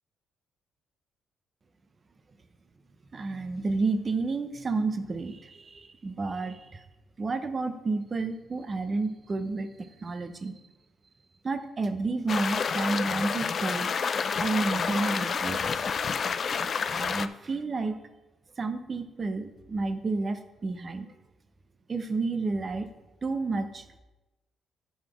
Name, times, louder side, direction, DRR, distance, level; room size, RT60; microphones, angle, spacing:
voice 1, 3.1-6.8 7.2-10.5 11.4-13.9 14.4-15.9 16.9-18.0 18.6-21.1 21.9-22.9 23.2-24.0, right 3 dB, 30° right, 9 dB, 0.6 m, -31 dB
sound 1, 12.3-17.3, left 6 dB, 45° left, 0.3 m, -29 dB
10.5 x 4.0 x 4.8 m, 1.1 s
cardioid pair, 120°, 0 cm